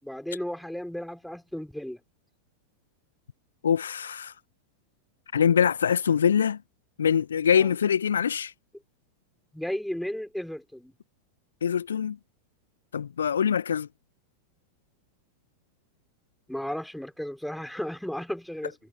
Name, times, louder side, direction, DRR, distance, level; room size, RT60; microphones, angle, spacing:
voice 1, 0.0-2.0 7.5-7.7 9.5-10.9 16.5-18.8, equal, ahead, 5.7 m, -34 dB
voice 2, 3.6-4.3 5.3-6.6 7.0-8.5 11.6-12.2 12.9-13.9, left 8 dB, 70° left, 1.5 m, -24 dB
figure-of-eight pair, 90°, 0 cm